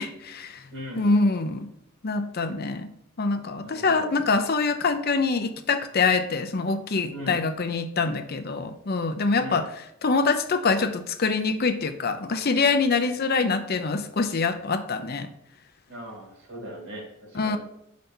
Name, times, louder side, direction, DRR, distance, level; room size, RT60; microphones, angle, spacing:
voice 1, 0.0-0.6 1.0-1.7 2.0-2.9 3.2-9.6 10.0-15.3 17.4-17.6, left 4 dB, 50° left, 8 dB, 0.7 m, -25 dB
voice 2, 0.7-1.3 3.6-4.1 7.1-7.4 9.4-9.7 15.9-17.6, equal, 65° right, 0 dB, 2.7 m, -39 dB
6.7 x 5.2 x 4.4 m, 0.81 s
head